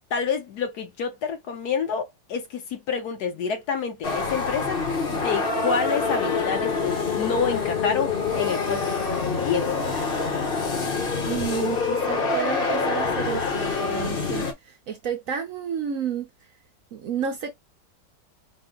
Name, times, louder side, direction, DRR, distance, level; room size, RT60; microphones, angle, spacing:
voice 1, 0.1-4.8 5.1-9.7, left 6 dB, 65° left, 1.3 m, -28 dB
sound 1, 4.0-14.5, left 4 dB, 40° left, 0.9 m, -26 dB
voice 2, 11.3-16.3 16.9-17.5, right 7 dB, 60° right, 0.9 m, -31 dB
4.2 x 2.1 x 3.7 m
omnidirectional pair, 1.9 m